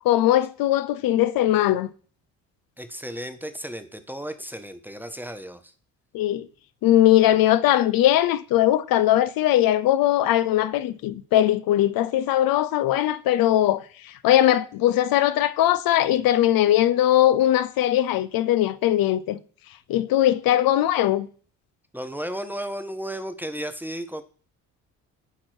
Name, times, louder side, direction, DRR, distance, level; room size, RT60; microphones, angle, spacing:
voice 1, 0.0-1.9 6.1-6.4 6.8-13.8 14.2-19.4 19.9-21.3, left 13 dB, 65° left, 0.6 m, -20 dB
voice 2, 2.8-5.7 21.9-24.2, equal, 5° right, 0.7 m, -34 dB
8.9 x 3.0 x 4.5 m
supercardioid pair, 65°, 38 cm